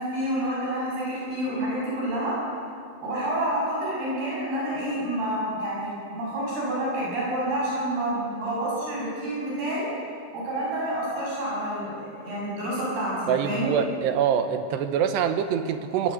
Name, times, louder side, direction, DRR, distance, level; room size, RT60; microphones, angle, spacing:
voice 1, 0.0-2.4 3.0-9.9 10.3-13.8, right 1 dB, 55° right, -6 dB, 9.0 m, -28 dB
voice 2, 13.3-16.1, right 8 dB, 70° right, 8 dB, 2.9 m, -25 dB
21.5 x 20.5 x 7.9 m, 2.2 s
omnidirectional pair, 5.5 m